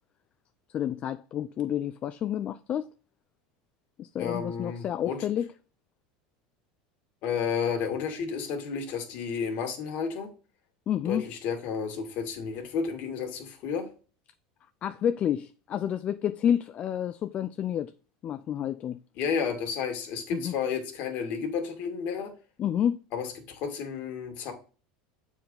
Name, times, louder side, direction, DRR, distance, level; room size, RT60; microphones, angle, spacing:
voice 1, 0.7-2.9 4.0-5.4 10.9-11.2 14.8-17.9 18.2-19.0 20.3-20.5 22.6-23.0, left 9 dB, 35° left, 0.4 m, -29 dB
voice 2, 4.2-5.2 7.2-10.3 11.0-13.9 19.2-22.3 23.1-24.5, left 6 dB, 55° left, 2.2 m, -32 dB
7.4 x 4.6 x 3.9 m
supercardioid pair, 120°, 4 cm